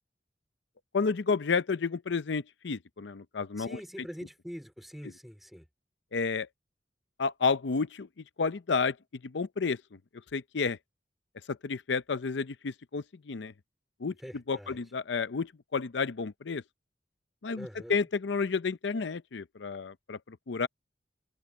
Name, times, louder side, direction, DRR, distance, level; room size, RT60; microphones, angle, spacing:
voice 1, 0.9-3.8 6.1-6.5 7.2-8.1 8.4-9.0 9.2-9.8 10.3-10.8 11.5-13.5 14.0-14.1 14.5-16.6 17.4-20.7, left 5 dB, 80° left, 0.6 m, -31 dB
voice 2, 3.6-5.7 14.2-14.8 17.6-18.0, equal, ahead, 3.3 m, -44 dB
open air
head